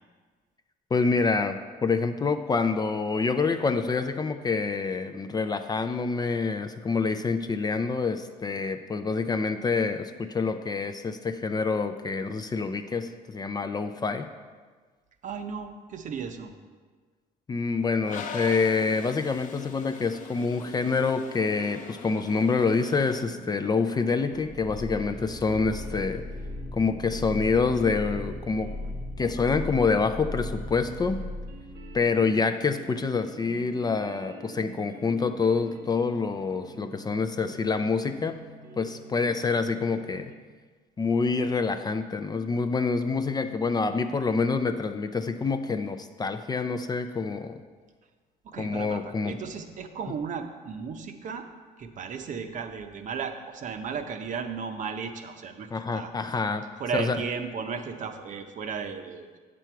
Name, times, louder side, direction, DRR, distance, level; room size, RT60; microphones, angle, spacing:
voice 1, 0.9-14.3 17.5-26.2 26.7-28.7 29.2-31.2 31.9-38.3 38.8-40.3 41.0-47.6 48.6-49.3 55.7-57.2, left 4 dB, 25° left, 8 dB, 0.4 m, -27 dB
voice 2, 15.2-16.5 48.4-51.5 51.8-56.1 56.8-59.4, right 6 dB, 50° right, 7 dB, 0.7 m, -35 dB
Toilet flush, 18.0-23.2, left 5 dB, 50° left, 0.8 m, -41 dB
sound 1, 22.1-40.3, right 4 dB, 75° right, 1.0 m, -48 dB
sound 2, 24.3-32.2, left 2 dB, 5° left, 0.9 m, -37 dB
8.1 x 6.1 x 4.5 m, 1.4 s
cardioid pair, 110°, 17 cm